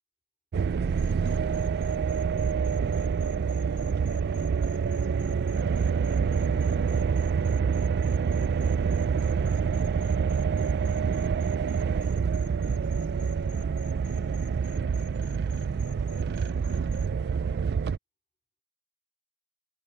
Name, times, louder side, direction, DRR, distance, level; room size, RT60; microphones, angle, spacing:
sound 1, 0.5-18.0, right 6 dB, 50° right, 0.3 m, -27 dB
sound 2, 0.9-17.1, left 9 dB, 55° left, 2.1 m, -55 dB
voice 1, 1.5-7.2 9.1-11.1 11.8-16.8 17.2-17.9, left 1 dB, 30° left, 3.0 m, -60 dB
head